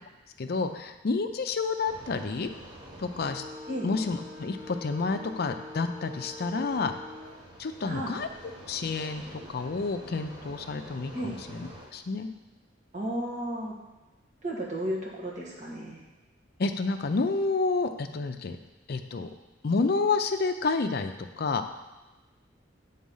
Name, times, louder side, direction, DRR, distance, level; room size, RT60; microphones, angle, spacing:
voice 1, 0.4-2.5 3.0-3.4 3.8-6.9 7.6-8.3 8.7-12.3 16.6-18.6 18.9-19.3 19.6-21.6, left 4 dB, 55° left, 7 dB, 0.5 m, -29 dB
sound 1, 1.9-11.8, left 1 dB, 25° right, 1.2 m, -45 dB
voice 2, 12.9-13.7 14.4-16.0, right 1 dB, 40° right, -3 dB, 1.5 m, -33 dB
7.5 x 4.0 x 5.5 m, 1.1 s
head